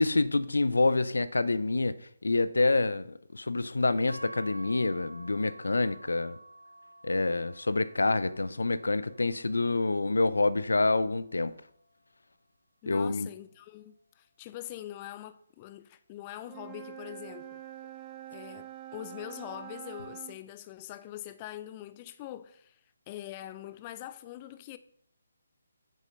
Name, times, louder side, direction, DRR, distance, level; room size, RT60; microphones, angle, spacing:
voice 1, 0.0-2.0 2.2-6.4 7.0-11.5 12.9-13.3, left 3 dB, 75° left, 0.7 m, -27 dB
sound 1, 4.1-12.3, right 1 dB, 90° left, 1.7 m, -51 dB
voice 2, 12.8-17.6 18.3-22.8 23.1-24.8, left 13 dB, 25° left, 0.5 m, -43 dB
Wind instrument woodwind instrument, 16.4-20.4, right 12 dB, 15° right, 1.4 m, -45 dB
9.4 x 8.1 x 5.5 m
figure-of-eight pair, 145°, 0 cm